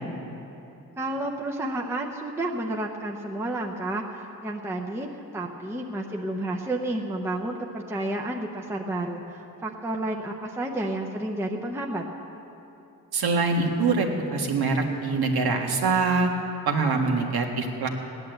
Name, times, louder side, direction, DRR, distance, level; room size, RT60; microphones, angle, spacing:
voice 1, 1.0-5.1 5.3-12.0, right 1 dB, 5° right, 0 dB, 0.7 m, -31 dB
voice 2, 13.1-16.3 16.7-17.9, right 4 dB, 85° right, 2 dB, 1.8 m, -24 dB
17.0 x 11.0 x 7.9 m, 3.0 s
wide cardioid pair, 180°, 37 cm